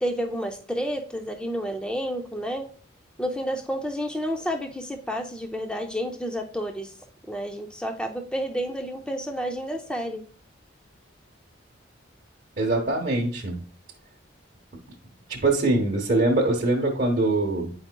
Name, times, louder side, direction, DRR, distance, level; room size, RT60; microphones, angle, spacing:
voice 1, 0.0-2.7 3.2-6.9 7.3-10.2, equal, 5° left, 4 dB, 0.4 m, -30 dB
voice 2, 12.6-13.6 15.3-17.7, right 2 dB, 45° right, -2 dB, 1.0 m, -23 dB
8.7 x 4.9 x 2.2 m, 0.43 s
head